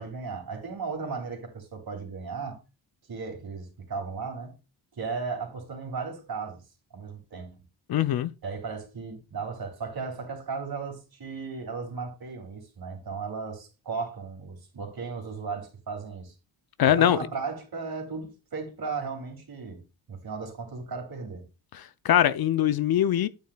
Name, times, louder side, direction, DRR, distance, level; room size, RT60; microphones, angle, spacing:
voice 1, 0.0-2.6 3.1-4.5 4.9-6.6 6.9-7.6 8.4-16.3 17.0-19.8 20.1-21.4, right 4 dB, 50° right, 2.9 m, -36 dB
voice 2, 7.9-8.3 16.8-17.2 21.7-23.3, left 11 dB, 50° left, 0.5 m, -22 dB
8.8 x 7.5 x 2.3 m
cardioid pair, 85°, 47 cm